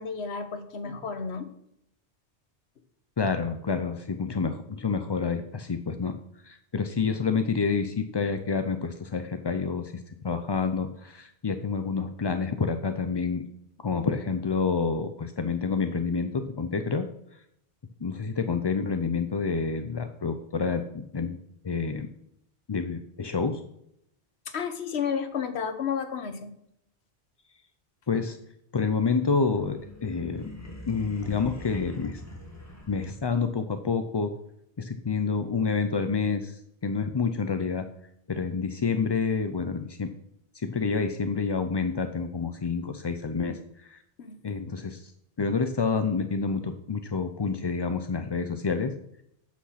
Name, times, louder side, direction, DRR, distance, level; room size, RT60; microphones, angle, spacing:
voice 1, 0.0-1.5 24.5-26.5 44.2-44.4, left 6 dB, 70° left, 9 dB, 1.3 m, -32 dB
voice 2, 3.2-6.1 6.4-13.4 13.8-17.1 18.0-21.4 21.6-22.1 22.7-23.6 28.1-28.4 28.7-30.5 30.9-32.2 32.9-34.3 34.8-37.9 38.3-40.1 40.5-44.0 44.4-45.1 45.4-48.9, left 5 dB, 45° left, 8 dB, 0.3 m, -28 dB
sound 1, 29.2-33.5, left 1 dB, 15° left, 1.5 m, -43 dB
8.5 x 6.1 x 5.7 m, 0.75 s
omnidirectional pair, 1.2 m